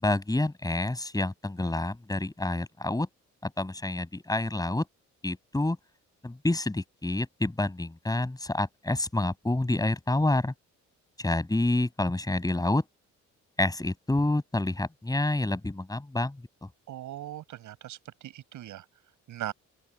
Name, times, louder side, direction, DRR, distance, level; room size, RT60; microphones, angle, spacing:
voice 1, 0.0-3.1 3.4-4.8 5.2-5.8 6.2-10.5 11.2-12.8 13.6-16.4, left 2 dB, 10° left, 6.5 m, -28 dB
voice 2, 16.9-18.0 18.2-18.8 19.3-19.5, right 13 dB, 80° right, 6.2 m, -39 dB
open air
cardioid pair, 90°, 30 cm